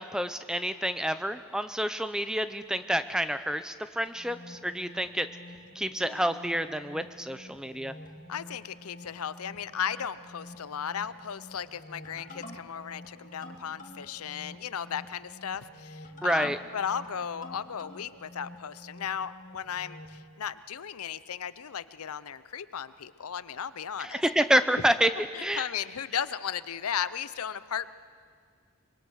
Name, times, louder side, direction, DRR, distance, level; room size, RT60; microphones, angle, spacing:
voice 1, 0.0-5.3 5.8-7.9 16.2-16.6 24.0-25.1 25.4-25.7, equal, 5° right, 11 dB, 0.5 m, -28 dB
sound 1, 4.1-20.2, left 1 dB, 35° left, 2.2 m, -48 dB
voice 2, 6.0-6.4 8.3-24.2 25.3-27.9, left 8 dB, 90° left, 15 dB, 0.6 m, -36 dB
24.5 x 22.0 x 6.4 m, 2.1 s
head